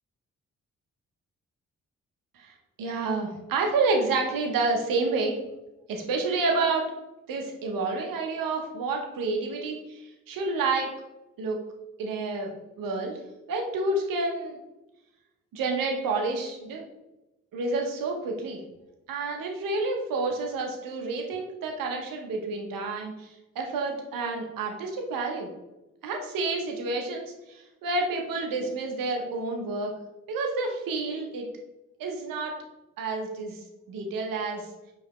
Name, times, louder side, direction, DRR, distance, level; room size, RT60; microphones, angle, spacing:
voice 1, 2.3-5.4 5.9-6.9 7.3-10.9 11.4-11.6 12.0-12.5 12.8-13.2 13.5-14.6 15.5-16.8 17.5-18.6 19.1-25.5 26.0-29.9 30.3-31.5 32.0-32.5 33.0-33.6 33.9-34.7, right 3 dB, 75° right, 1 dB, 0.9 m, -29 dB
4.8 x 3.4 x 3.1 m, 0.97 s
hypercardioid pair, 40°, 34 cm